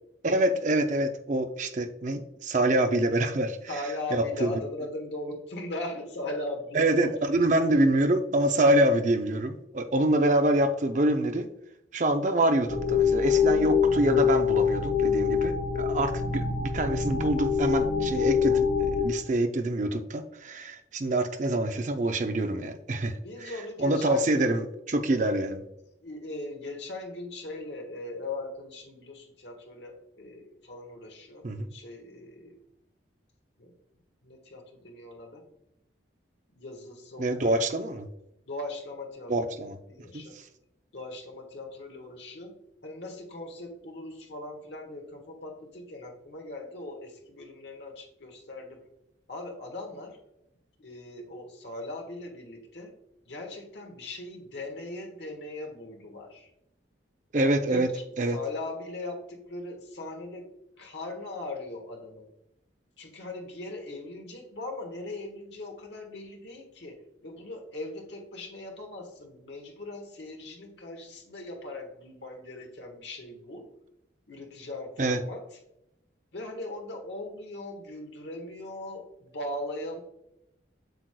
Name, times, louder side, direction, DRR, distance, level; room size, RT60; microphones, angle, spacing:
voice 1, 0.2-3.7 4.1-4.6 6.7-11.5 11.9-23.5 23.8-25.6 31.4-31.7 37.2-38.1 39.3-39.8 40.1-40.2 57.3-57.9 58.2-58.4 75.0-75.2, right 1 dB, 40° right, 7 dB, 0.5 m, -26 dB
voice 2, 3.7-7.3 22.9-24.5 26.0-31.4 31.7-32.6 33.6-33.7 34.2-35.4 36.5-37.7 38.5-39.6 39.9-40.4 40.9-42.5 42.8-48.8 49.3-50.2 50.8-52.9 53.3-56.5 57.3-58.0 58.3-60.5 60.8-62.3 63.0-73.7 74.3-75.4 76.3-80.0, left 2 dB, 70° left, 2 dB, 1.4 m, -39 dB
sound 1, 12.7-19.0, left 6 dB, 50° left, 0.9 m, -25 dB
7.9 x 6.2 x 2.2 m, 0.82 s
head